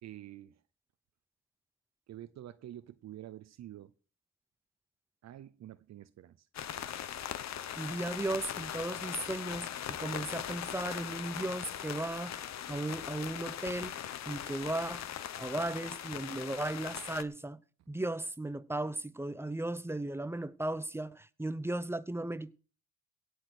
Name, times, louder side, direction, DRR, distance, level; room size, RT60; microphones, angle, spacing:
voice 1, 0.0-0.6 2.1-3.9 5.2-6.5, right 12 dB, 60° right, 0.7 m, -48 dB
sound 1, 6.5-17.2, left 10 dB, 60° left, 1.0 m, -40 dB
voice 2, 7.8-15.1 15.4-17.6 17.9-22.5, right 2 dB, 10° right, 0.7 m, -36 dB
17.0 x 6.3 x 6.4 m
cardioid pair, 90°, 30 cm